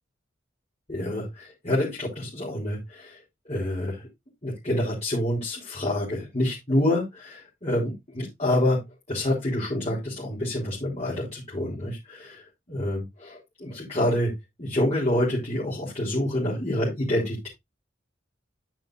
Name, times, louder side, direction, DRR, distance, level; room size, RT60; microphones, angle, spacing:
voice 1, 0.9-3.2 3.5-4.1 4.4-8.8 9.1-14.3 14.6-17.5, left 1 dB, 35° left, -5 dB, 4.2 m, -27 dB
10.5 x 8.9 x 2.6 m, 0.21 s
head